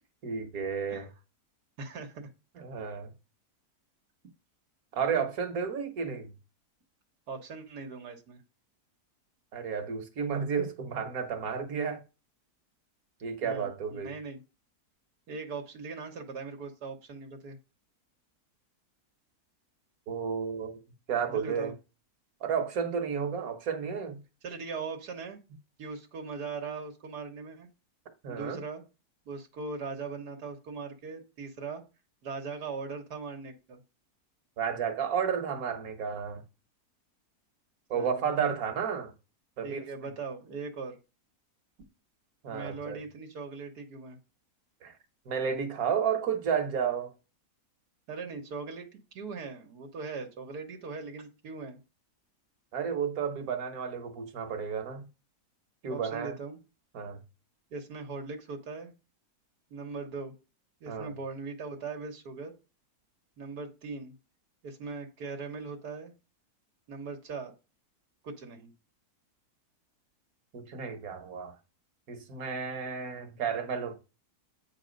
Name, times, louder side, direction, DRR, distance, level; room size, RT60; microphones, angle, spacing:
voice 1, 0.2-1.1 2.6-3.1 4.9-6.3 9.5-12.0 13.2-14.1 20.1-20.7 21.1-21.7 22.4-24.2 28.2-28.6 34.6-36.4 37.9-39.1 39.6-39.9 42.4-43.0 44.8-44.9 45.3-47.1 52.7-55.1 55.8-56.3 56.9-57.2 60.9-61.1 70.5-71.5 72.1-73.9, right 6 dB, 65° right, 1.6 m, -32 dB
voice 2, 1.8-2.3 2.8-3.0 7.3-8.4 13.4-14.4 15.3-17.6 21.3-21.7 24.4-25.4 25.8-27.7 28.3-28.8 29.3-31.8 32.2-33.8 37.9-38.3 39.6-41.0 42.5-44.2 48.1-51.8 55.9-56.6 57.7-58.9 59.7-60.3 60.8-62.5 63.4-64.2 64.6-66.1 66.9-67.5 68.2-68.7, right 4 dB, 85° right, 1.7 m, -40 dB
8.7 x 4.1 x 5.1 m
omnidirectional pair, 1.7 m